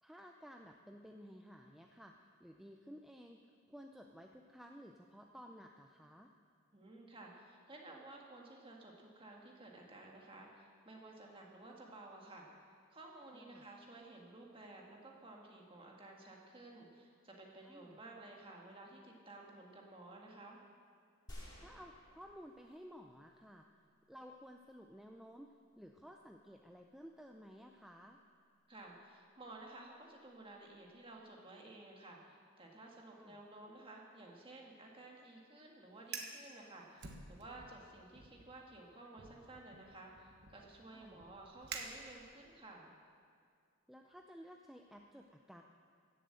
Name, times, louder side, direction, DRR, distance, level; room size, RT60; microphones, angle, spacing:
voice 1, 0.0-3.4 3.7-6.3 13.3-13.6 17.6-18.0 21.6-23.6 24.1-28.2 33.1-33.4 40.9-41.2 43.9-45.6, equal, ahead, 2 dB, 0.4 m, -55 dB
voice 2, 6.7-20.6 28.7-42.9, right 2 dB, 25° right, 0 dB, 1.7 m, -54 dB
sound 1, 21.3-23.0 23.5-23.6, equal, 20° left, 2.6 m, -53 dB
Fire, 36.0-36.4 37.0-37.8 38.1-38.5 39.2-42.5, right 5 dB, 50° right, 1.2 m, -49 dB
16.5 x 7.5 x 7.7 m, 2.2 s
head